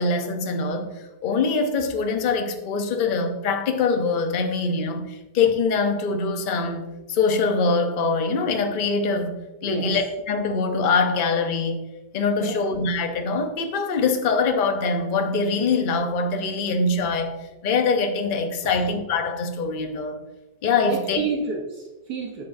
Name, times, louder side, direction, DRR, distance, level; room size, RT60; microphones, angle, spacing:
voice 1, 0.0-11.8 12.1-17.3 17.6-20.2 20.6-21.2, left 4 dB, 45° left, 5 dB, 0.6 m, -23 dB
voice 2, 20.8-22.5, right 4 dB, 70° right, 0 dB, 1.4 m, -30 dB
9.1 x 7.1 x 2.6 m, 1.1 s
omnidirectional pair, 1.8 m